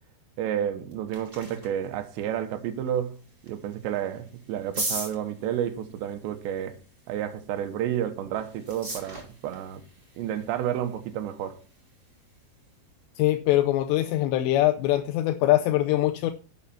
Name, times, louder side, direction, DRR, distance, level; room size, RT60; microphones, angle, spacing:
voice 1, 0.4-3.2 3.4-6.8 7.1-9.8 10.2-11.6, right 10 dB, 80° right, 3.3 m, -30 dB
sound 1, 0.7-13.2, right 2 dB, 15° right, 2.1 m, -42 dB
voice 2, 13.2-16.3, left 14 dB, 80° left, 2.8 m, -23 dB
11.0 x 8.1 x 4.2 m
omnidirectional pair, 5.1 m